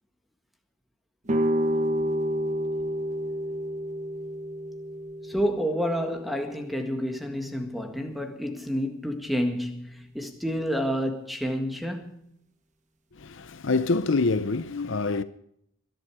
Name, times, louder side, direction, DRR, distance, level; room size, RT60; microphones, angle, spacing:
sound 1, 1.3-7.0, equal, 35° right, 1.2 m, -30 dB
voice 1, 5.2-12.2, equal, ahead, 1.8 m, -29 dB
voice 2, 13.1-15.2, left 3 dB, 60° left, 0.7 m, -26 dB
21.5 x 11.5 x 4.8 m
head